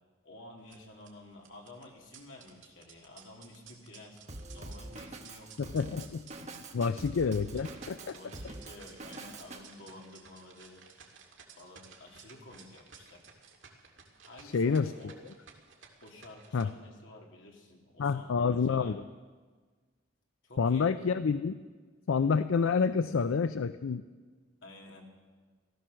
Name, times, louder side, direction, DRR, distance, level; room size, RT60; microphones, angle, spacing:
voice 1, 0.2-4.2 4.5-5.6 8.0-10.8 11.6-13.2 14.3-15.2 16.0-19.0 20.4-21.0 24.6-25.1, left 2 dB, 70° left, 0 dB, 2.7 m, -51 dB
sound 1, 0.6-16.6, right 6 dB, 70° right, 2.2 m, -56 dB
Drum kit, 4.3-9.6, right 2 dB, 35° right, 1.2 m, -44 dB
voice 2, 5.6-6.2 6.5-8.2 14.4-14.9 16.5-16.7 18.0-19.0 20.6-21.6 22.1-24.0, left 5 dB, 85° left, 12 dB, 0.5 m, -28 dB
16.0 x 14.5 x 6.3 m, 1.4 s
head